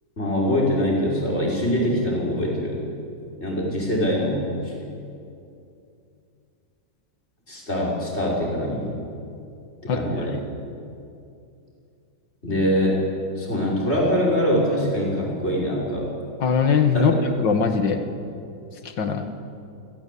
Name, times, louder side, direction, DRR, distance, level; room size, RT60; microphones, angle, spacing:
voice 1, 0.2-2.8 3.4-4.7 7.5-8.9 9.8-10.4 12.4-13.0 13.4-16.1 16.9-17.1, equal, 35° left, -3 dB, 5.9 m, -23 dB
voice 2, 9.9-10.4 16.4-17.1 17.4-18.0 19.0-19.3, left 6 dB, 85° left, 7 dB, 2.3 m, -21 dB
29.5 x 16.0 x 8.6 m, 2.6 s
omnidirectional pair, 1.9 m